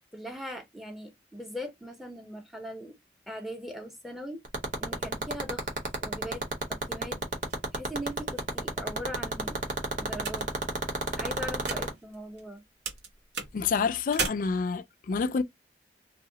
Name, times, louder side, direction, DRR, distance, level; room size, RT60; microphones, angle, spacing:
voice 1, 0.1-3.0 3.3-4.4 4.8-5.7 6.0-7.2 7.7-9.6 10.0-10.5 11.2-12.6, equal, ahead, 0.7 m, -40 dB
sound 1, 4.4-11.9, right 3 dB, 50° right, 1.0 m, -28 dB
sound 2, 7.5-12.6 12.8-14.3, right 4 dB, 75° right, 1.0 m, -39 dB
voice 2, 13.5-15.4, left 5 dB, 50° left, 0.3 m, -28 dB
2.7 x 2.1 x 3.7 m
head